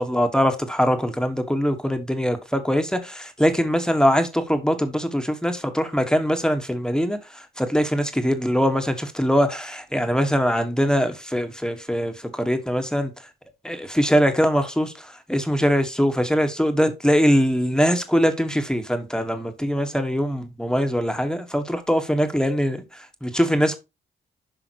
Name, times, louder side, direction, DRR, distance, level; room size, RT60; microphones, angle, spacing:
voice 1, 0.0-13.1 13.6-23.8, equal, 5° left, 1.5 m, -22 dB
10.0 x 5.6 x 3.0 m
cardioid pair, 60°, 21 cm